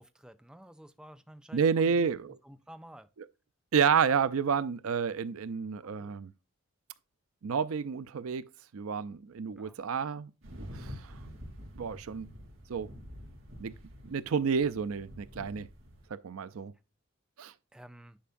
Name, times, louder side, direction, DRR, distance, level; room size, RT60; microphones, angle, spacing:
voice 1, 0.0-2.1 2.4-3.1 5.8-6.2 9.6-9.8 17.7-18.2, right 1 dB, 5° right, 0.4 m, -51 dB
voice 2, 1.5-2.4 3.7-6.3 7.4-8.4 8.7-10.9 11.8-12.3 12.7-12.9 13.6-13.7 14.0-15.7 16.1-16.7 17.4-17.5, right 6 dB, 85° right, 0.5 m, -30 dB
sound 1, 10.4-16.1, equal, 65° right, 2.8 m, -47 dB
10.5 x 4.7 x 2.5 m
head